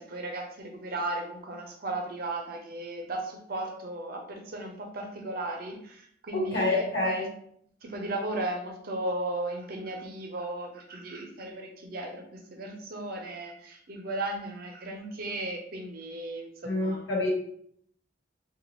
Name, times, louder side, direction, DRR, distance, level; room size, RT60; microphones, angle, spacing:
voice 1, 0.0-7.3 7.8-17.1, right 2 dB, 55° right, 3 dB, 0.5 m, -36 dB
voice 2, 6.3-7.2 16.6-17.3, left 2 dB, 80° left, -3 dB, 1.1 m, -27 dB
2.8 x 2.3 x 3.0 m, 0.68 s
head